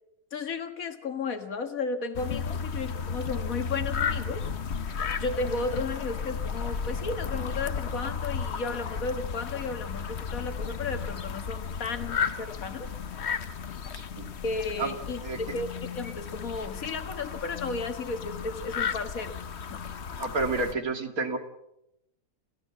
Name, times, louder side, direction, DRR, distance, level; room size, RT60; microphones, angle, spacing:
voice 1, 0.3-4.5 5.2-12.9 14.4-15.7 15.9-19.4 19.7-19.8, left 3 dB, 75° left, 8 dB, 2.0 m, -34 dB
sound 1, 2.1-20.7, left 6 dB, 50° left, 1.2 m, -34 dB
voice 2, 20.2-21.4, right 3 dB, 85° right, 6 dB, 2.8 m, -29 dB
29.5 x 14.5 x 7.5 m, 0.84 s
omnidirectional pair, 1.5 m